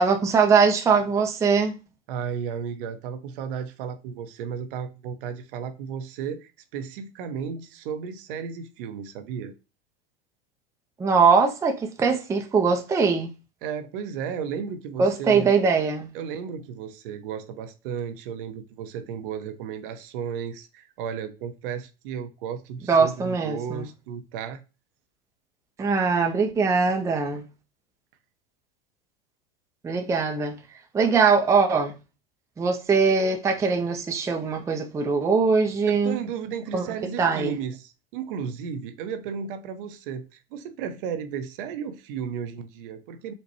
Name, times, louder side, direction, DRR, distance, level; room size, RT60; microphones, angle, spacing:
voice 1, 0.0-1.8 11.0-13.3 15.0-16.1 22.9-23.8 25.8-27.4 29.8-30.6 30.9-32.0 32.6-36.2 36.7-36.8 37.2-37.5, right 5 dB, 10° right, 0.4 m, -21 dB
voice 2, 2.1-9.5 13.6-15.5 16.1-24.6 36.0-43.3, right 7 dB, 60° right, 0.6 m, -34 dB
4.1 x 2.2 x 2.8 m
hypercardioid pair, 90°, 31 cm